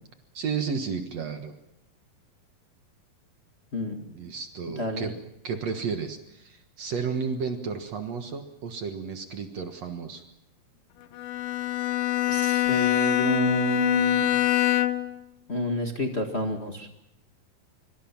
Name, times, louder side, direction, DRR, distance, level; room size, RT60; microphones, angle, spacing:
voice 1, 0.3-1.5 4.0-5.2 5.4-10.2, right 5 dB, 55° right, 6 dB, 2.3 m, -32 dB
voice 2, 3.7-4.0 4.8-5.1 12.3-14.3 15.5-16.9, equal, 35° left, 3 dB, 1.1 m, -29 dB
Bowed string instrument, 11.2-15.2, left 14 dB, 90° left, 2.9 m, -24 dB
25.0 x 24.5 x 5.9 m, 0.84 s
omnidirectional pair, 4.1 m